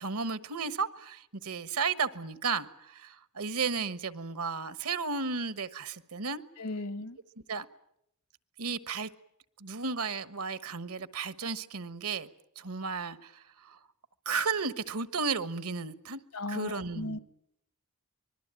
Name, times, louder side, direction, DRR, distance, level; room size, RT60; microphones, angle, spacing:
voice 1, 0.0-6.4 7.5-7.7 8.6-9.1 9.6-12.3 12.6-13.8 14.2-16.2 16.5-17.2, right 5 dB, 80° right, 1.3 m, -34 dB
voice 2, 6.6-7.2 16.3-17.2, left 2 dB, 85° left, 1.5 m, -36 dB
25.0 x 21.5 x 8.9 m
head